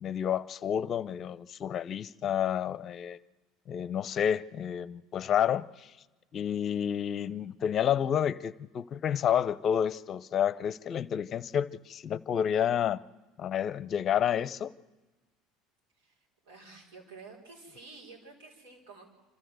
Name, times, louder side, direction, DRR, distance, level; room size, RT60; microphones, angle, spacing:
voice 1, 0.0-3.2 3.7-5.9 6.3-13.0 13.4-14.7, left 9 dB, 45° left, 0.6 m, -30 dB
voice 2, 16.4-19.1, right 4 dB, 80° right, 5.1 m, -50 dB
27.5 x 13.0 x 7.8 m
hypercardioid pair, 75°, 0 cm